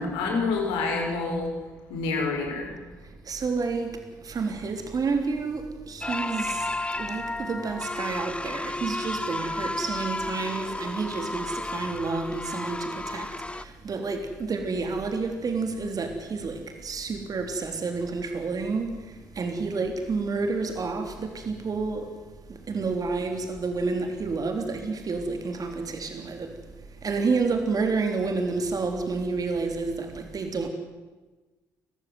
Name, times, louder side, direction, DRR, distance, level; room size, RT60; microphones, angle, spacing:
voice 1, 0.0-1.5 1.9-2.7, left 3 dB, 70° left, 5.3 m, -27 dB
voice 2, 3.3-6.7 7.0-18.9 19.4-22.1 22.5-26.5 27.0-30.7, right 4 dB, 45° right, 3.5 m, -29 dB
sound 1, 6.0-13.6, left 2 dB, 10° left, 1.1 m, -33 dB
24.0 x 15.0 x 9.4 m
hypercardioid pair, 45°, 9 cm